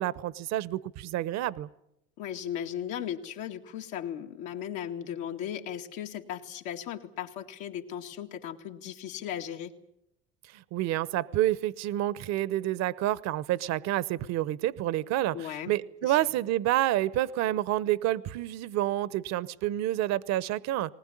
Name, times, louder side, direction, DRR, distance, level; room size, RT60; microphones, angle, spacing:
voice 1, 0.0-1.7 10.5-20.9, right 14 dB, 65° right, 18 dB, 0.9 m, -29 dB
voice 2, 2.2-9.7 15.3-15.7 16.0-16.3, left 10 dB, 80° left, 3 dB, 2.2 m, -37 dB
19.5 x 19.5 x 9.9 m, 0.79 s
supercardioid pair, 95°, 30 cm